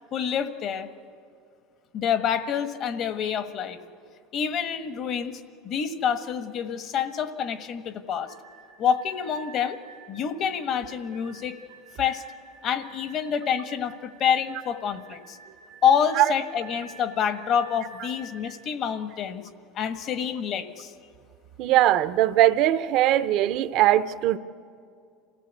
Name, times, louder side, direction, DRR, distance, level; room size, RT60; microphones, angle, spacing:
voice 1, 0.1-0.9 1.9-3.8 4.3-8.3 8.8-9.8 10.1-11.6 12.0-12.2 12.6-15.4 15.8-19.5 19.7-20.9, left 8 dB, 45° left, 9 dB, 1.4 m, -27 dB
sound 1, 8.2-18.4, right 4 dB, 85° right, 2.3 m, -50 dB
voice 2, 21.6-24.4, right 13 dB, 60° right, 13 dB, 0.8 m, -20 dB
27.5 x 16.5 x 8.2 m, 2.3 s
supercardioid pair, 115°, 0 cm